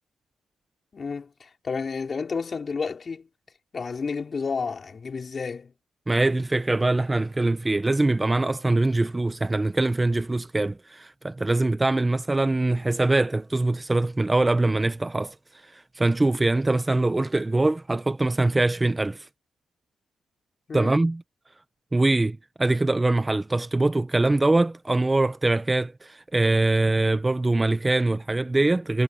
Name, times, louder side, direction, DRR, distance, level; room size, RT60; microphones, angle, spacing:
voice 1, 0.9-3.3 3.7-5.7 20.7-20.9, left 5 dB, 40° left, 3.5 m, -31 dB
voice 2, 6.1-15.3 15.6-19.3 20.7-21.2 21.9-29.0, right 2 dB, 15° right, 0.7 m, -23 dB
cardioid pair, 95°, 0 cm